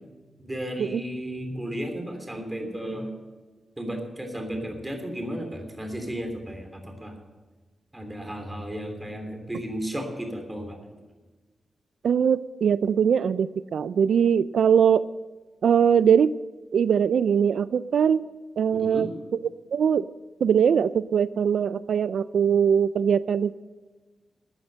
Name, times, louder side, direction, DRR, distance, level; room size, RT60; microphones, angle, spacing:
voice 1, 0.4-3.1 3.8-7.1 7.9-10.8 18.7-19.1, equal, 15° right, 4 dB, 3.2 m, -34 dB
voice 2, 12.0-15.0 15.6-16.3 16.7-18.2 18.6-19.1 19.7-20.0 20.4-23.5, right 7 dB, 85° right, 15 dB, 0.3 m, -21 dB
13.5 x 9.5 x 6.4 m, 1.3 s
wide cardioid pair, 115°, 0 cm